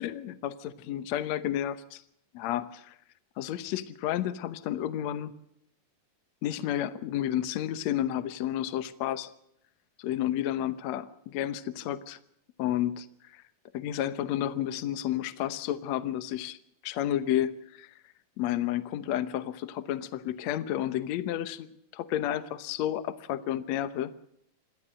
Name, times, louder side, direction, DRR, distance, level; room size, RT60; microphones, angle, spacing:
voice 1, 0.0-2.0 2.3-2.9 3.4-5.3 6.4-9.3 10.0-12.2 12.6-13.1 13.3-13.4 13.7-16.6 16.8-17.9 18.4-21.7 21.9-24.1, left 12 dB, 65° left, 14 dB, 1.9 m, -31 dB
27.5 x 12.5 x 7.5 m, 0.74 s
omnidirectional pair, 3.9 m